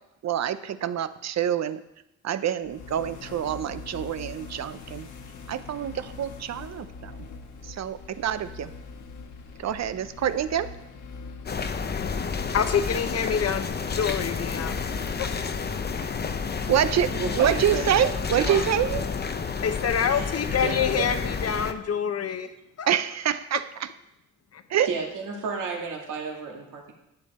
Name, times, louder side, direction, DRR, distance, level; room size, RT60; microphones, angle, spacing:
voice 1, 0.2-1.8 2.2-5.1 5.5-7.2 7.6-8.7 9.6-10.7 16.7-18.9 22.9-23.6 24.7-24.9, right 9 dB, 60° right, 13 dB, 0.7 m, -26 dB
sound 1, 2.6-16.5, left 4 dB, 90° left, 1.3 m, -44 dB
sound 2, 11.5-21.7, left 5 dB, 35° left, 0.7 m, -30 dB
voice 2, 12.5-15.3 19.6-22.5 22.8-22.9 24.5-24.6, left 7 dB, 55° left, 9 dB, 1.0 m, -27 dB
voice 3, 17.1-18.0 18.4-18.6 18.9-19.0 20.1-20.3 20.6-21.0 24.9-26.9, right 5 dB, 90° right, 0 dB, 2.1 m, -32 dB
10.5 x 8.5 x 4.2 m, 0.87 s
cardioid pair, 90°, 30 cm